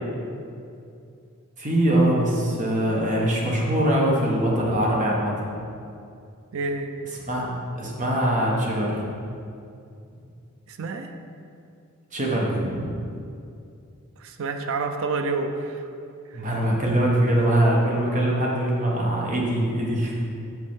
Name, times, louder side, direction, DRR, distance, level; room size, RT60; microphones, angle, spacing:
voice 1, 1.6-5.4 7.2-7.5 7.7-9.0 12.1-12.9 16.3-20.1, right 1 dB, 35° right, -3 dB, 1.3 m, -22 dB
voice 2, 6.5-7.0 10.7-11.1 14.2-15.9 16.3-16.5, right 3 dB, 65° right, 6 dB, 0.5 m, -29 dB
7.8 x 5.4 x 3.6 m, 2.5 s
head